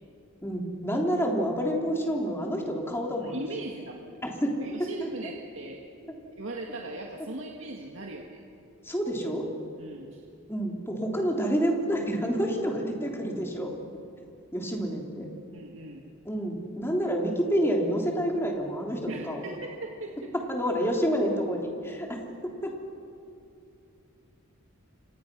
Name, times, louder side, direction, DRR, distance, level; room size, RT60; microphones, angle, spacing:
voice 1, 0.4-3.4 4.2-5.1 8.8-9.5 10.5-13.7 14.5-15.3 16.2-19.4 20.3-22.7, equal, 10° left, 0 dB, 3.2 m, -28 dB
voice 2, 3.2-4.2 4.6-5.8 6.4-8.4 9.8-10.2 13.2-13.5 15.5-16.0 19.1-20.3, right 2 dB, 65° right, 0 dB, 2.0 m, -39 dB
29.5 x 26.5 x 6.1 m, 2.6 s
head